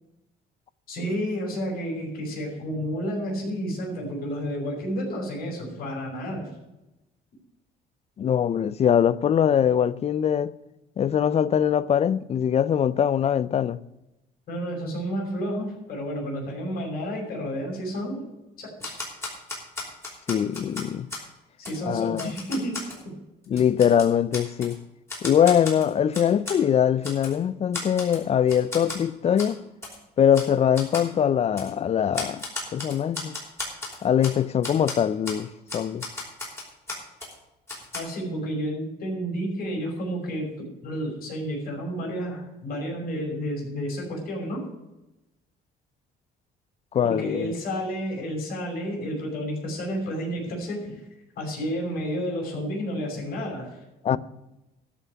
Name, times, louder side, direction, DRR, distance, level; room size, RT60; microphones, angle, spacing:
voice 1, 0.9-6.5 14.5-18.3 18.6-18.9 21.6-22.8 23.0-23.1 37.9-40.5 40.8-44.6 47.0-51.0 51.4-53.8, equal, 60° left, 6.0 m, -31 dB
voice 2, 8.2-10.5 11.0-13.8 20.3-21.1 21.8-22.3 23.5-24.8 25.2-29.6 30.2-32.4 32.7-33.3 34.0-36.0 46.9-47.5 54.0-54.2, left 9 dB, 40° left, 0.5 m, -22 dB
Typewriter, 18.8-21.3 21.7-21.8 22.2-23.0 23.4-24.7 25.1-26.6 27.0-27.4 27.7-28.2 28.5-29.0 29.4-29.5 29.8-30.0 30.3-30.5 30.8-31.1 31.6-31.7 32.1-34.4 34.6-35.0 35.3-35.4 35.7-37.3 37.7-38.0, left 2 dB, 15° left, 4.8 m, -35 dB
13.0 x 5.7 x 9.4 m
cardioid pair, 110°, 17 cm